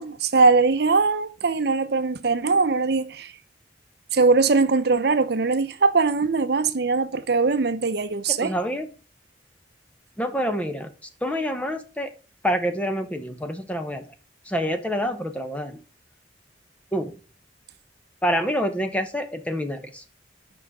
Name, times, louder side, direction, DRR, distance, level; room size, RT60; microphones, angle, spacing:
voice 1, 0.0-3.3 4.1-8.5, right 4 dB, 60° right, 0.7 m, -21 dB
voice 2, 8.3-8.9 10.2-10.9 11.2-12.1 12.4-14.1 14.5-15.8 16.9-17.1 18.2-20.0, equal, 5° left, 0.9 m, -27 dB
7.3 x 5.6 x 4.9 m
head